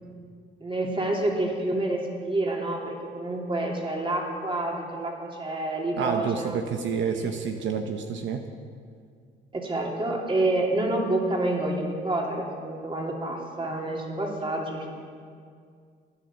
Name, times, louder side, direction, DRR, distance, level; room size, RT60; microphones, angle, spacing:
voice 1, 0.6-6.6 7.0-7.4 9.5-14.9, right 2 dB, 25° right, 0 dB, 2.9 m, -28 dB
voice 2, 6.0-8.4, right 6 dB, 75° right, 5 dB, 0.9 m, -29 dB
15.0 x 10.5 x 7.2 m, 2.2 s
cardioid pair, 90°, 20 cm